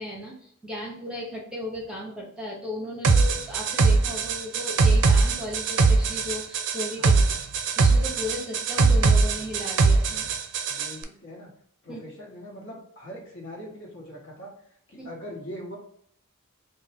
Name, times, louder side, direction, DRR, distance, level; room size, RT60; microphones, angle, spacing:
voice 1, 0.0-7.3 7.8-10.3 11.9-12.0 15.0-15.1, left 1 dB, 5° right, -3 dB, 0.8 m, -36 dB
sound 1, 3.0-10.9, right 4 dB, 55° right, 0.4 m, -21 dB
voice 2, 7.0-7.4 10.7-11.5 11.8-14.5 14.9-15.8, equal, 55° left, -2 dB, 1.2 m, -41 dB
3.6 x 2.2 x 3.4 m, 0.66 s
head